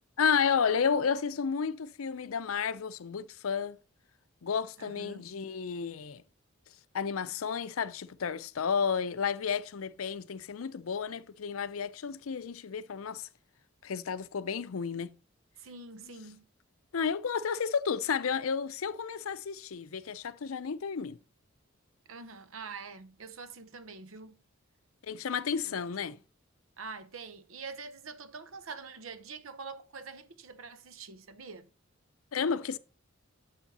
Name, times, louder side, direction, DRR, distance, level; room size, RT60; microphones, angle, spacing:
voice 1, 0.2-3.8 4.4-6.2 6.9-13.3 13.8-15.2 16.9-21.2 25.0-26.2 32.3-32.8, left 6 dB, 85° left, 0.5 m, -32 dB
voice 2, 4.8-5.3 15.6-16.5 22.1-24.4 25.6-25.7 26.8-31.7, right 4 dB, 70° right, 0.8 m, -45 dB
8.1 x 7.2 x 4.1 m
head